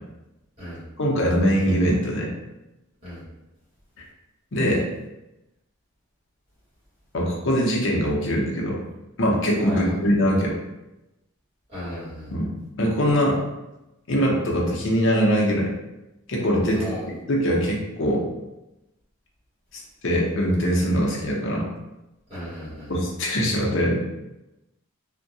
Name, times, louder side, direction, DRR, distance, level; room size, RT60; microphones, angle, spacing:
voice 1, 1.0-2.3 4.5-4.9 7.1-8.8 9.2-10.6 12.3-12.5 12.8-13.4 14.1-15.7 16.3-16.9 17.3-18.3 19.7-21.7 22.9-24.1, equal, 60° left, -2 dB, 0.6 m, -22 dB
voice 2, 9.6-10.0 11.7-12.3 16.7-17.0 22.3-22.9, equal, 30° right, -11 dB, 1.5 m, -35 dB
2.6 x 2.1 x 2.6 m, 0.97 s
head